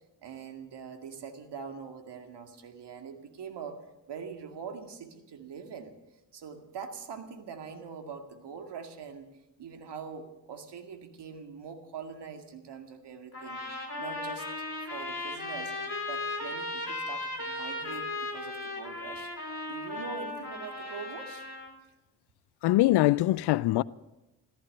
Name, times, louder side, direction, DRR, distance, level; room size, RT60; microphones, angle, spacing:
voice 1, 0.2-3.8 4.1-5.9 6.3-9.3 9.6-14.5 14.9-15.7 16.1-19.3 19.7-21.5, right 6 dB, 55° right, 2.2 m, -43 dB
sound 1, 13.3-21.7, left 2 dB, 30° left, 4.9 m, -36 dB
voice 2, 22.6-23.8, left 17 dB, 55° left, 0.5 m, -23 dB
14.5 x 14.5 x 6.6 m
hypercardioid pair, 40°, 49 cm